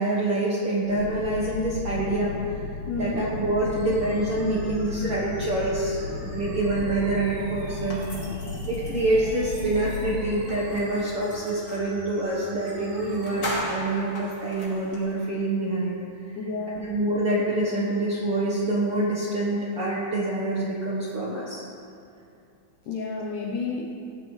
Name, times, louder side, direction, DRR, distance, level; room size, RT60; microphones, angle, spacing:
voice 1, 0.0-2.7 3.0-8.1 8.7-16.3 16.8-21.6, right 2 dB, 85° right, -6 dB, 1.2 m, -26 dB
sound 1, 0.8-10.3, left 4 dB, 55° left, 2.2 m, -35 dB
voice 2, 2.9-3.3 16.4-16.8 22.9-23.9, left 3 dB, 90° left, -2 dB, 1.7 m, -30 dB
sound 2, 3.6-13.6, equal, 35° right, 3.4 m, -43 dB
sound 3, 7.9-11.9 12.6-12.7 13.0-15.1, left 1 dB, 30° left, 2.5 m, -37 dB
18.0 x 13.0 x 3.3 m, 2.5 s
omnidirectional pair, 5.0 m